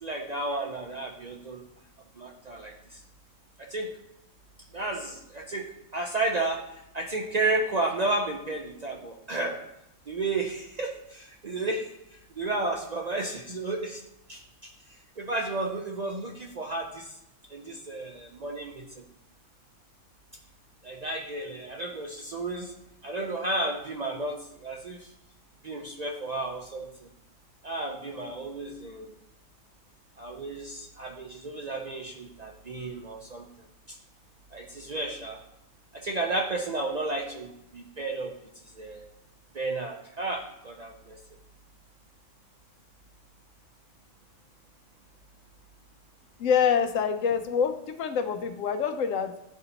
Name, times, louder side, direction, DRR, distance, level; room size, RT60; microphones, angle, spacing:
voice 1, 0.0-1.6 2.2-3.0 3.6-3.9 4.7-5.7 5.9-9.6 10.1-14.0 14.3-14.7 15.2-17.2 17.5-19.0 20.8-22.7 23.0-25.1 25.6-27.1 27.6-29.2 30.2-33.5 33.9-34.0 34.5-35.4 35.9-38.3 38.7-39.0 39.5-41.2, right 2 dB, 50° right, 1 dB, 0.5 m, -32 dB
voice 2, 46.4-49.3, left 7 dB, 85° left, 8 dB, 1.0 m, -26 dB
10.0 x 3.9 x 2.9 m, 0.81 s
omnidirectional pair, 1.3 m